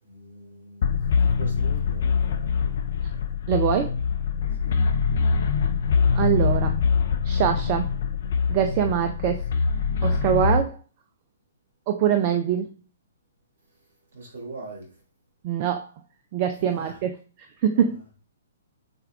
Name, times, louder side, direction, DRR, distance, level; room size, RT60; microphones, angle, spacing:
voice 1, 0.0-2.8 4.6-4.9 14.1-14.9 16.6-17.0 17.7-18.0, right 2 dB, 60° right, 2.6 m, -42 dB
sound 1, 0.8-10.6, left 5 dB, 55° left, 0.5 m, -24 dB
voice 2, 3.5-3.9 6.1-6.7 7.3-7.9 8.5-9.4 10.0-10.7 11.9-12.7 15.4-15.8 16.3-17.1 17.6-18.0, right 9 dB, 35° right, 0.4 m, -23 dB
6.6 x 2.3 x 3.3 m
figure-of-eight pair, 120°, 0 cm